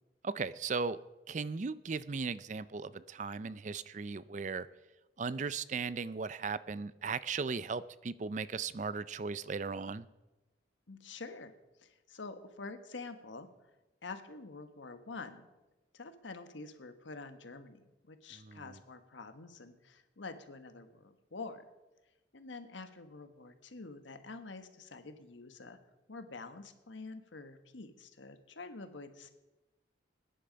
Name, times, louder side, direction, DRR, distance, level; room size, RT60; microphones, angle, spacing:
voice 1, 0.2-1.0 1.3-4.7 5.2-10.1 18.4-18.6, right 4 dB, 40° right, 16 dB, 0.4 m, -37 dB
voice 2, 10.9-11.5 11.8-13.5 14.0-15.5 15.9-21.6 22.3-25.8 26.1-29.3, left 3 dB, 85° left, 9 dB, 1.3 m, -47 dB
20.0 x 10.5 x 5.2 m, 1.1 s
head